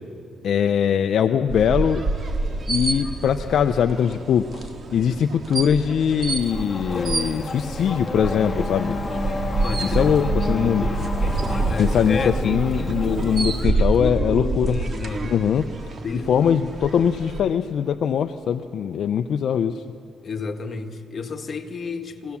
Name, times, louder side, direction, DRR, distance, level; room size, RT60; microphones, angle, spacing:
voice 1, 0.4-2.0 2.7-9.0 9.8-10.9 11.8-14.8 15.2-15.7 16.3-19.8, left 8 dB, 65° left, 8 dB, 0.6 m, -22 dB
sound 1, 1.5-17.4, right 3 dB, 45° right, 1.7 m, -27 dB
Race car auto racing / Accelerating revving vroom, 6.4-13.6, left 3 dB, 25° left, 1.8 m, -31 dB
voice 2, 9.6-10.2 11.6-15.4 16.0-16.5 20.2-22.4, left 4 dB, 45° left, 5 dB, 1.6 m, -31 dB
22.5 x 16.5 x 7.1 m, 2.5 s
cardioid pair, 90°, 0 cm